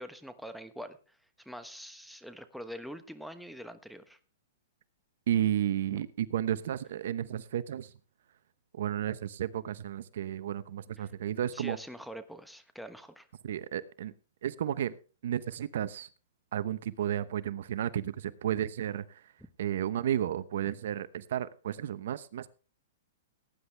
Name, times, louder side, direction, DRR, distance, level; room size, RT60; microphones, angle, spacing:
voice 1, 0.0-4.2 5.9-6.0 11.0-11.1 11.5-13.3, equal, ahead, 8 dB, 1.2 m, -44 dB
voice 2, 5.3-7.9 8.7-11.8 13.4-14.1 14.4-14.9 15.2-16.1 16.5-19.3 19.6-22.5, right 10 dB, 65° right, 16 dB, 0.9 m, -32 dB
18.5 x 9.9 x 3.4 m, 0.36 s
hypercardioid pair, 145°, 0 cm